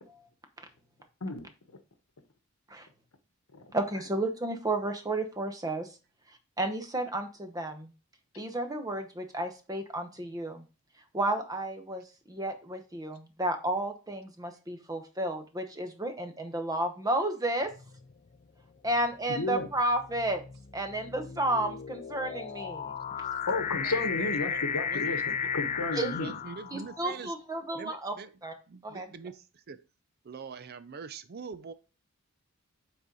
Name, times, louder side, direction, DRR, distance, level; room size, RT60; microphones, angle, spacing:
voice 1, 3.7-6.0 6.6-7.9 8.4-10.6 11.1-17.7 18.8-20.4 20.7-22.9 26.0-26.2 26.7-28.1 28.4-28.5 28.8-29.1, right 1 dB, 15° right, 0.9 m, -32 dB
sound 1, 17.7-18.1 19.0-27.2, left 6 dB, 35° left, 0.4 m, -35 dB
voice 2, 19.3-19.7 23.5-25.2 25.5-26.3, left 3 dB, 80° left, 1.0 m, -32 dB
voice 3, 23.7-25.1 25.4-25.5 25.9-27.3 27.7-28.3 28.7-29.8 30.2-31.7, right 5 dB, 45° right, 0.5 m, -44 dB
7.6 x 4.0 x 4.0 m
head